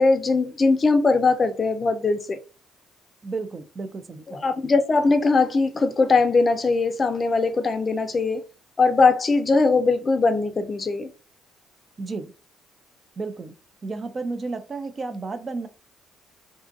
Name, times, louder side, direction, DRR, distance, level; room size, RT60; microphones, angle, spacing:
voice 1, 0.0-2.4 4.3-8.4 8.8-11.1, left 3 dB, 35° left, 0.4 m, -20 dB
voice 2, 3.2-4.5 12.0-12.3 13.2-13.5 13.8-15.7, right 3 dB, 35° right, 0.4 m, -32 dB
2.6 x 2.4 x 2.5 m
cardioid pair, 90°, 0 cm